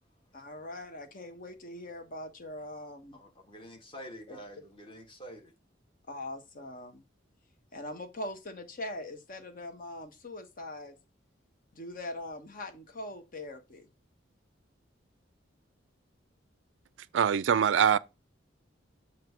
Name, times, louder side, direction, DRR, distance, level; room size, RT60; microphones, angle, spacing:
voice 1, 0.3-3.2 4.3-4.4 6.1-7.0 7.7-10.9 11.7-13.9, left 1 dB, 50° left, 1.1 m, -42 dB
voice 2, 3.1-5.5, equal, 30° left, 1.6 m, -47 dB
voice 3, 17.1-18.0, right 8 dB, 70° right, 0.4 m, -23 dB
7.5 x 2.7 x 5.7 m
head